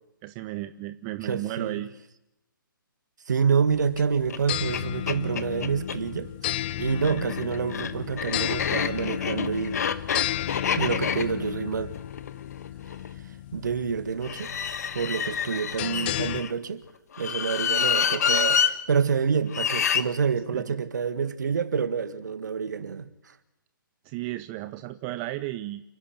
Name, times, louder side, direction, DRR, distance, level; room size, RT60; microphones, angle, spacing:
voice 1, 0.2-1.9 20.5-20.8 24.0-25.8, right 16 dB, 20° right, 0.7 m, -34 dB
voice 2, 1.2-1.8 3.3-6.3 6.8-9.8 10.8-11.9 13.5-14.5 15.0-16.8 17.2-23.3, right 6 dB, 55° right, 1.9 m, -27 dB
sound 1, 3.7-16.4, left 13 dB, 30° left, 0.7 m, -34 dB
sound 2, 4.3-4.4 4.7-4.8 5.1-6.0 6.9-13.1 14.2-16.5 17.1-18.7 19.5-20.0, left 7 dB, 50° left, 1.3 m, -28 dB
29.5 x 11.0 x 9.6 m
figure-of-eight pair, 135°, 11 cm